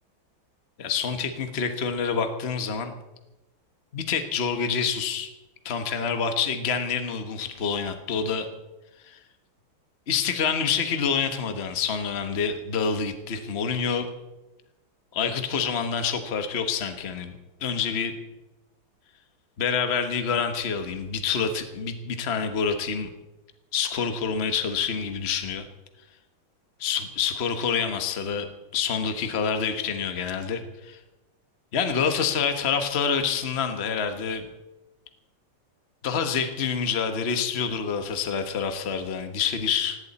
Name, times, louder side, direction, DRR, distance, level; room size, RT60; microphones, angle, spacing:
voice 1, 0.8-2.9 3.9-5.3 5.6-8.5 9.1-9.2 10.1-14.1 15.1-17.4 17.6-18.1 19.6-23.1 23.7-25.7 26.8-31.0 31.7-34.5 36.0-40.0, left 6 dB, 35° left, 7 dB, 1.3 m, -27 dB
18.0 x 17.0 x 4.2 m, 1.0 s
omnidirectional pair, 2.2 m